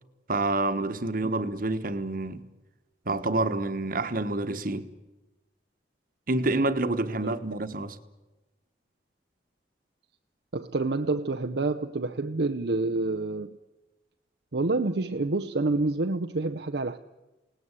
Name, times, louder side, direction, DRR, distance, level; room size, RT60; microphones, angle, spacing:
voice 1, 0.3-2.4 3.1-4.9 6.3-8.0, right 2 dB, 50° right, 1.4 m, -28 dB
voice 2, 10.5-13.6 14.5-17.0, right 3 dB, 65° right, 0.8 m, -28 dB
28.5 x 18.5 x 8.2 m
head